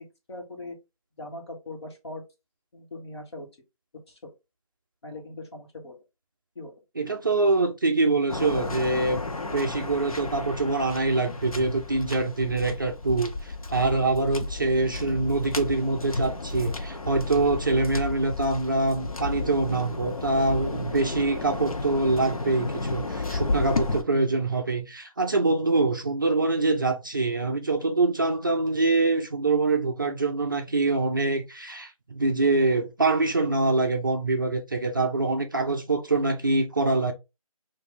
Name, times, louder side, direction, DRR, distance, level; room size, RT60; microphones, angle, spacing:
voice 1, 0.3-0.8 1.2-2.2 2.7-3.5 4.1-4.3 5.0-6.0 6.5-6.8, left 2 dB, 45° left, 1.4 m, -40 dB
voice 2, 7.0-9.2 9.5-37.1, right 3 dB, 35° right, 0.4 m, -25 dB
Waves surf, 8.3-24.0, left 3 dB, 75° left, 0.8 m, -32 dB
3.1 x 2.5 x 3.8 m
figure-of-eight pair, 165°, 18 cm